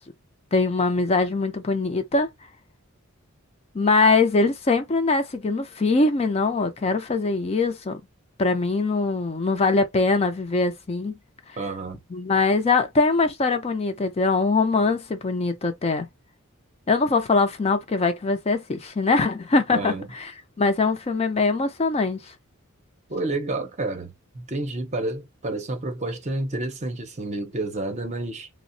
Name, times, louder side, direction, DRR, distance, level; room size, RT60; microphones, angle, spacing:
voice 1, 0.5-2.3 3.7-8.0 8.4-11.2 12.1-16.1 16.9-20.3 20.6-22.3, left 3 dB, 30° left, 0.4 m, -22 dB
voice 2, 11.6-12.0 19.7-20.1 23.1-28.5, right 2 dB, 35° right, 0.6 m, -30 dB
3.6 x 2.0 x 2.5 m
head